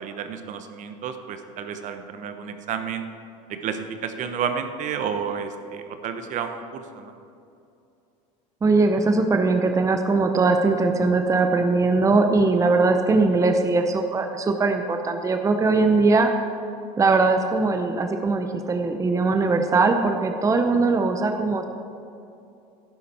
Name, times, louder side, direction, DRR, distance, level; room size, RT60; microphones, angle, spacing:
voice 1, 0.0-3.1 3.5-7.1, right 7 dB, 50° right, 8 dB, 1.0 m, -31 dB
voice 2, 8.6-16.3 17.0-21.6, right 3 dB, 20° right, 6 dB, 0.8 m, -20 dB
11.0 x 10.5 x 4.4 m, 2.6 s
supercardioid pair, 100°, 16 cm